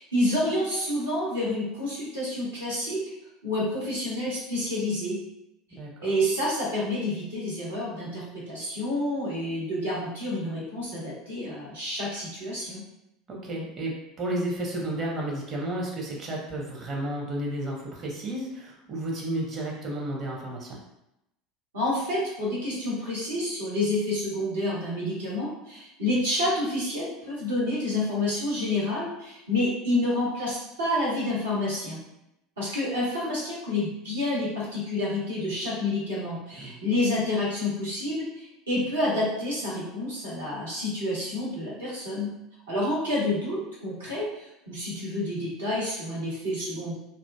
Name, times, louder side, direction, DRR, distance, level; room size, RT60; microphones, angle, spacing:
voice 1, 0.0-3.0 3.4-5.2 6.0-12.8 21.7-32.0 32.6-42.3 42.7-47.0, left 1 dB, 80° right, -7 dB, 1.1 m, -29 dB
voice 2, 13.3-13.9 14.2-20.8 36.6-36.9, right 1 dB, 35° right, -2 dB, 0.8 m, -32 dB
2.6 x 2.5 x 2.2 m, 0.86 s
figure-of-eight pair, 75°, 0 cm